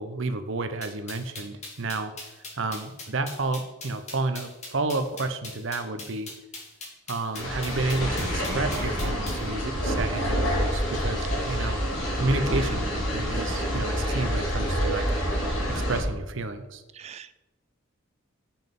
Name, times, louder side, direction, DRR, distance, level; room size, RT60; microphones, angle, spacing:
voice 1, 0.0-6.3 7.1-11.8 12.2-15.1 15.7-16.8, right 2 dB, 60° right, 9 dB, 0.7 m, -31 dB
sound 1, 0.8-9.4, left 3 dB, 30° left, 1.9 m, -40 dB
sound 2, 7.3-16.0, equal, 60° left, 2.5 m, -27 dB
voice 2, 17.0-17.3, right 7 dB, 30° right, 14 dB, 0.3 m, -43 dB
7.7 x 5.9 x 5.4 m, 1.1 s
head